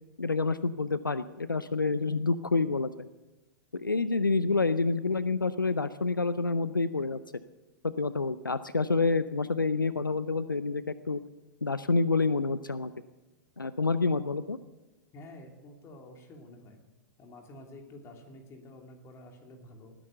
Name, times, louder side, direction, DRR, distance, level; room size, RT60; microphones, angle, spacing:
voice 1, 0.2-3.1 3.7-7.2 7.8-11.2 11.6-12.9 13.6-14.6, left 3 dB, 85° left, 16 dB, 0.5 m, -28 dB
voice 2, 15.1-16.8 17.2-20.0, left 1 dB, 25° left, 3 dB, 3.2 m, -49 dB
19.5 x 10.0 x 6.9 m, 1.1 s
figure-of-eight pair, 100°, 11 cm